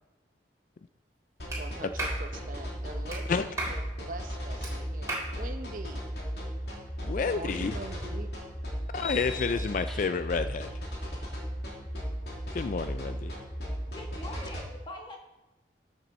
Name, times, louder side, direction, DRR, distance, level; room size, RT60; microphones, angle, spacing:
sound 1, 1.4-14.6, equal, 65° left, 2.9 m, -36 dB
Clapping, 1.5-1.6 2.0-2.2 3.1-3.2 3.6-3.8 4.6-4.7 5.1-5.3, right 2 dB, 15° right, 3.2 m, -33 dB
voice 1, 1.6-6.1 7.1-8.3, right 2 dB, 50° right, 6 dB, 0.9 m, -43 dB
voice 2, 7.0-7.8 8.9-10.7 12.5-13.3, left 5 dB, 50° left, 10 dB, 0.4 m, -30 dB
sound 2, 7.3-7.4 8.9-10.4, left 4 dB, 5° left, 1.4 m, -41 dB
voice 3, 13.6-15.2, left 1 dB, 25° left, 1 dB, 1.6 m, -44 dB
13.0 x 6.7 x 4.3 m, 1.0 s
head